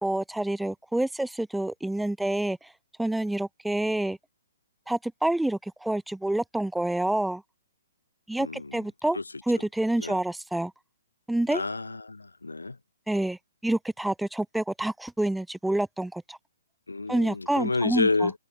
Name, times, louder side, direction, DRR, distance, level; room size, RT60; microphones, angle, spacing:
voice 1, 0.0-2.7 3.0-4.2 4.9-7.4 8.3-9.2 9.5-10.7 11.3-11.6 13.1-16.4 17.1-18.3, right 1 dB, ahead, 1.1 m, -28 dB
voice 2, 8.4-8.8 9.1-9.2 10.0-10.2 11.5-12.8 16.9-18.3, left 3 dB, 75° left, 1.3 m, -29 dB
figure-of-eight pair, 125°, 0 cm